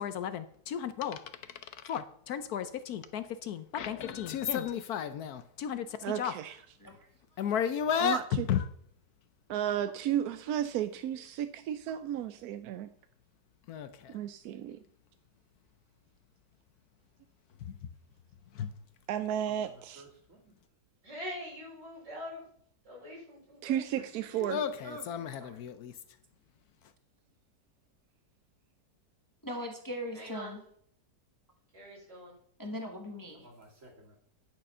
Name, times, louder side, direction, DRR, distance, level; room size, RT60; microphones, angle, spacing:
voice 1, 0.0-6.3 7.4-8.6 13.7-14.2 17.6-17.7 18.5-18.7 24.5-25.9, left 8 dB, 70° left, 11 dB, 1.0 m, -34 dB
voice 2, 6.0-6.6 8.0-8.5 9.5-12.9 14.1-14.8 19.1-20.0 23.6-24.6, right 10 dB, 70° right, 10 dB, 0.9 m, -33 dB
voice 3, 7.4-8.2 19.1-20.5 33.3-34.2, right 2 dB, 45° right, 1 dB, 2.6 m, -57 dB
voice 4, 21.0-22.5 22.8-24.0 24.3-24.7 30.1-30.5 31.7-32.3, left 1 dB, 85° right, -5 dB, 5.8 m, -44 dB
voice 5, 24.8-25.6 29.4-30.6 32.6-33.4, equal, 15° left, 2 dB, 1.1 m, -40 dB
10.0 x 6.6 x 5.4 m, 0.65 s
omnidirectional pair, 1.9 m